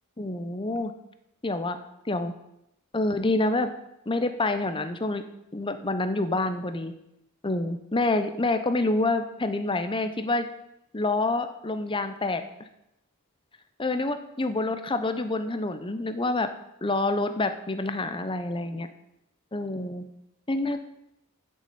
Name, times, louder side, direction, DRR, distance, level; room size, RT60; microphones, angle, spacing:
voice 1, 0.2-0.9 1.4-1.8 2.0-2.3 2.9-3.7 4.1-5.2 5.5-6.9 7.4-10.5 10.9-12.4 13.8-16.5 16.8-18.9 19.5-20.1 20.5-20.9, left 2 dB, 25° left, 9 dB, 0.8 m, -27 dB
8.1 x 7.4 x 8.5 m, 0.83 s
head